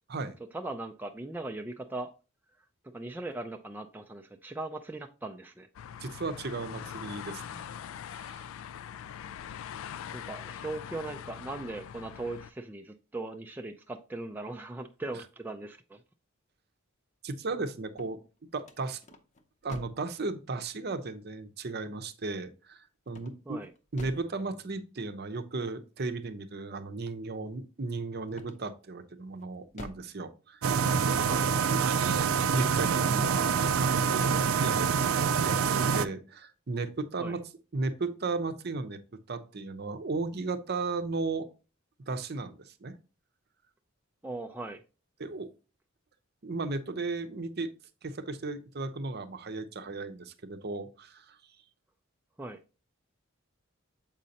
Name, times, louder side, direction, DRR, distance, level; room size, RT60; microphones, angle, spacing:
voice 1, 0.5-2.1 2.9-5.7 10.1-16.0 23.5-23.7 31.3-31.5 37.2-37.4 44.2-44.8 52.4-52.6, right 2 dB, 10° right, 0.3 m, -39 dB
sound 1, 5.7-12.5, left 9 dB, 75° left, 0.3 m, -42 dB
voice 2, 6.0-7.7 8.1-8.4 17.2-19.0 19.6-23.6 23.9-30.6 31.2-31.5 32.5-34.9 35.4-37.4 37.7-41.5 42.1-43.0 45.2-45.5 46.4-47.7 48.0-51.4, right 3 dB, 50° right, 0.7 m, -35 dB
sound 2, 17.8-20.1 23.1-24.4 28.3-28.8 29.4-30.2, left 1 dB, 35° left, 0.7 m, -49 dB
sound 3, 30.6-36.1, right 6 dB, 85° right, 0.4 m, -26 dB
7.3 x 5.2 x 2.8 m
head